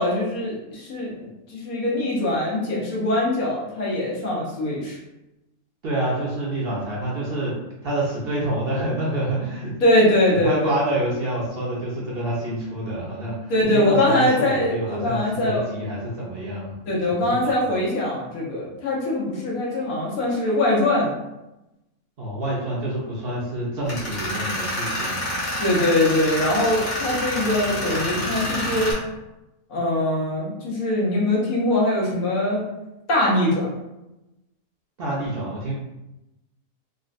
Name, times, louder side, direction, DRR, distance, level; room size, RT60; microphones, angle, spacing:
voice 1, 0.0-5.0 9.8-10.7 13.5-15.6 16.8-21.2 25.6-29.0 29.7-32.6 33.1-33.7, left 1 dB, 90° left, -4 dB, 1.4 m, -22 dB
voice 2, 5.8-7.6 7.8-9.7 10.3-16.8 17.1-17.5 22.2-25.2 35.0-35.7, right 1 dB, 55° right, -5 dB, 0.7 m, -27 dB
Tools, 23.8-28.9, left 1 dB, 60° left, 1.2 m, -28 dB
3.7 x 2.1 x 2.5 m, 0.95 s
omnidirectional pair, 1.5 m